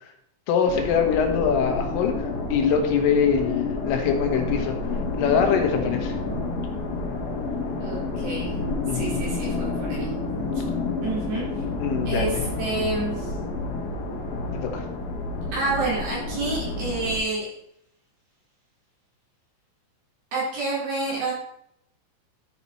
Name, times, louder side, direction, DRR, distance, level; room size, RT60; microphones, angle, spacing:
voice 1, 0.5-4.8 5.2-6.2 8.9-9.2 11.8-12.4 14.5-14.9, left 6 dB, 80° left, 3 dB, 3.8 m, -23 dB
sound 1, 0.7-17.2, left 3 dB, 60° left, 2.4 m, -29 dB
voice 2, 7.8-8.5 8.9-10.1 11.0-11.5 12.1-13.3 15.5-17.5 20.3-21.3, right 2 dB, 55° right, -7 dB, 6.3 m, -28 dB
13.5 x 5.9 x 4.2 m, 0.75 s
omnidirectional pair, 5.8 m